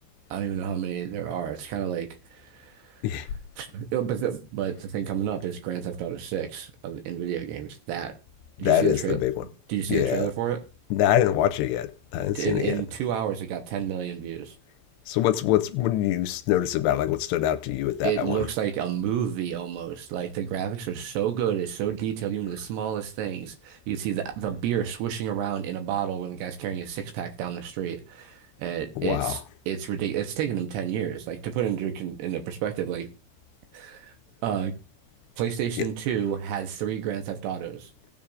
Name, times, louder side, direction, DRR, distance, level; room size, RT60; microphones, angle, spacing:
voice 1, 0.3-3.0 3.6-8.1 8.6-9.2 9.7-10.6 12.3-14.5 18.0-33.1 33.7-34.1 34.4-34.7 35.4-37.9, right 9 dB, 75° right, 3.0 m, -30 dB
voice 2, 8.6-9.4 9.9-10.3 10.9-12.8 15.1-18.5 29.0-29.4 35.8-35.9, left 12 dB, 80° left, 2.7 m, -24 dB
17.5 x 7.1 x 2.5 m
omnidirectional pair, 5.0 m